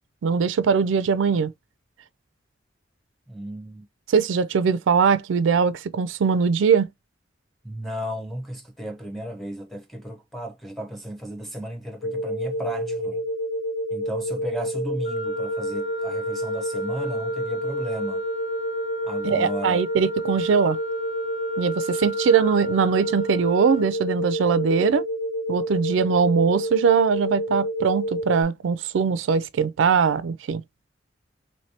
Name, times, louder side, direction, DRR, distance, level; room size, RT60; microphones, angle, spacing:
voice 1, 0.2-1.5 4.1-6.9 19.2-20.8 21.6-25.1 25.5-30.6, right 6 dB, 85° right, 0.4 m, -21 dB
voice 2, 3.3-3.9 7.6-13.2 13.9-18.2 19.0-19.8, equal, ahead, 0.7 m, -34 dB
sound 1, 12.0-28.4, equal, 60° left, 0.5 m, -29 dB
Wind instrument woodwind instrument, 15.0-23.9, equal, 40° left, 0.9 m, -39 dB
3.2 x 3.0 x 2.8 m
head